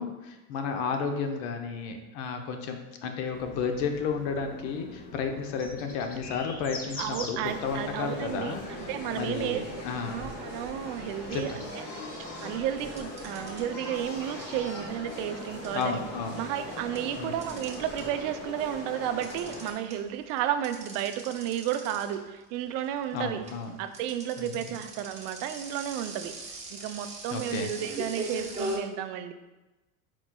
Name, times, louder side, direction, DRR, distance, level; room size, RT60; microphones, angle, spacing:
voice 1, 0.0-10.3 11.3-11.6 15.7-16.4 17.2-17.4 23.1-23.8 24.4-24.8 27.3-27.7, left 5 dB, 65° left, 5 dB, 0.7 m, -33 dB
sound 1, 3.3-11.7, left 3 dB, 25° left, 0.4 m, -44 dB
voice 2, 7.0-9.6 10.1-11.8 12.2-16.0 16.4-23.4 23.8-26.3 26.7-29.3, right 10 dB, 55° right, 9 dB, 0.5 m, -32 dB
sound 2, 7.4-19.7, left 1 dB, 45° left, 1.2 m, -40 dB
sound 3, 10.8-11.0 11.3-12.3 13.0-18.3 18.6-28.8, right 1 dB, 15° right, 0.8 m, -40 dB
4.5 x 4.2 x 2.2 m, 1.1 s
supercardioid pair, 115°, 41 cm